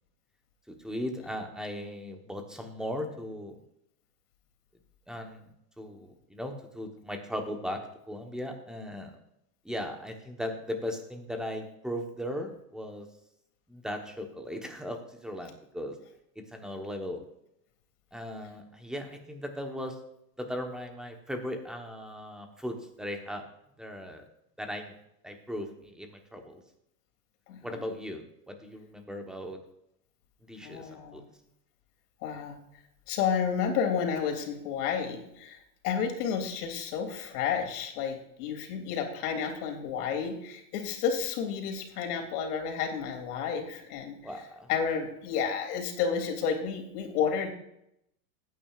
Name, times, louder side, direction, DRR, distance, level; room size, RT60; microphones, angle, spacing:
voice 1, 0.7-3.6 5.1-5.5 5.8-7.8 8.1-9.2 9.6-13.1 13.7-16.0 16.4-17.2 18.1-20.0 20.4-23.4 23.8-24.2 24.6-24.9 25.2-26.6 27.6-29.6 30.4-31.2 44.2-44.7, equal, ahead, 4 dB, 1.1 m, -38 dB
voice 2, 30.6-31.2 32.2-32.6 33.1-44.2 44.7-47.5, left 7 dB, 65° left, 3 dB, 2.9 m, -31 dB
17.0 x 9.4 x 2.5 m, 0.78 s
supercardioid pair, 150°, 49 cm